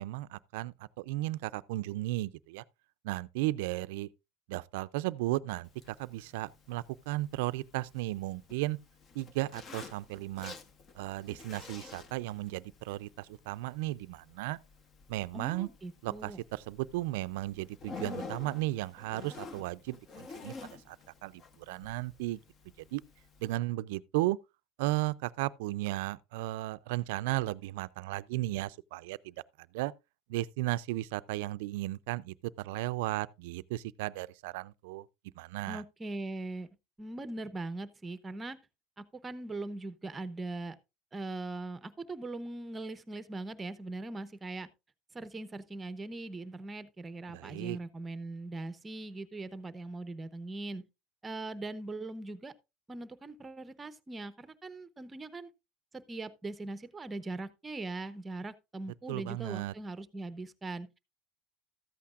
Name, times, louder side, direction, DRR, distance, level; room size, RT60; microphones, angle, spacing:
voice 1, 0.0-2.6 3.0-4.1 4.5-8.8 9.1-10.6 10.9-14.6 15.1-15.7 16.0-20.5 20.9-21.0 21.2-22.4 22.9-23.0 23.4-24.4 24.8-29.3 29.7-29.9 30.3-35.1 35.4-35.8 47.3-47.8 59.1-59.7, right 17 dB, 85° right, 0.4 m, -35 dB
Zipper (clothing), 5.6-23.6, left 4 dB, 30° left, 0.9 m, -50 dB
voice 2, 15.3-16.4 35.7-36.7 37.0-38.6 39.0-40.8 41.1-44.7 45.1-50.8 51.2-52.5 52.9-55.5 55.9-60.9, right 2 dB, 15° right, 0.8 m, -40 dB
13.5 x 8.5 x 2.4 m
supercardioid pair, 140°, 0 cm